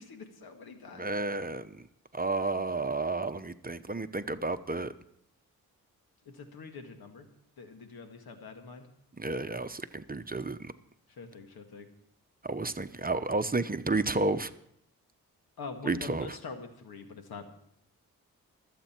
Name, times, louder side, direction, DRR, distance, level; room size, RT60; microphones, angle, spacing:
voice 1, 0.0-1.2 6.3-7.3 7.6-8.9 11.1-11.9 15.6-17.5, left 4 dB, 80° left, 6 dB, 1.9 m, -44 dB
voice 2, 0.9-1.9 2.1-4.9 9.2-10.7 12.4-14.5 15.8-16.3, right 3 dB, 25° right, 11 dB, 1.0 m, -31 dB
25.0 x 8.4 x 4.5 m, 0.70 s
supercardioid pair, 40°, 37 cm